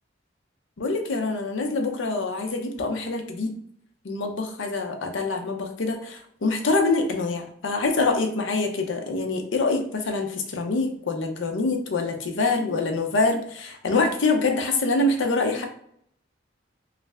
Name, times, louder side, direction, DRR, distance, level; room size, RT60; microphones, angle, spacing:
voice 1, 0.8-3.6 4.0-15.7, left 3 dB, 80° left, 4 dB, 0.6 m, -25 dB
3.1 x 2.4 x 3.3 m, 0.67 s
head